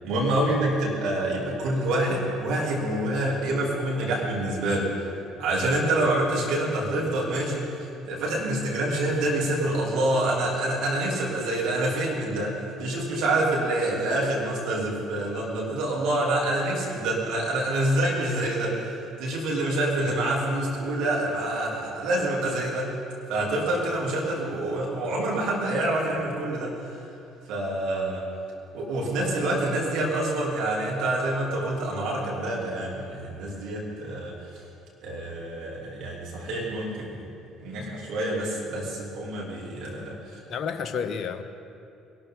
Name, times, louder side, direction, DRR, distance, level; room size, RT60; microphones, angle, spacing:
voice 1, 0.0-5.1 5.4-22.9 23.3-27.0 27.5-28.2 28.7-34.5 35.0-37.1 37.6-40.4, right 1 dB, 60° right, -4 dB, 3.6 m, -27 dB
voice 2, 40.5-41.4, left 6 dB, 50° left, 9 dB, 0.8 m, -31 dB
22.0 x 12.5 x 4.0 m, 2.7 s
figure-of-eight pair, 55°, 0 cm